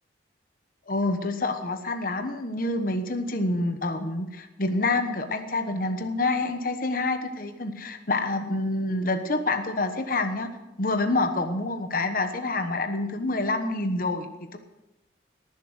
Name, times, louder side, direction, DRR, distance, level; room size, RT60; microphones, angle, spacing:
voice 1, 0.9-10.5 10.8-14.6, left 2 dB, 50° left, 7 dB, 1.1 m, -27 dB
18.5 x 7.5 x 6.4 m, 1.0 s
head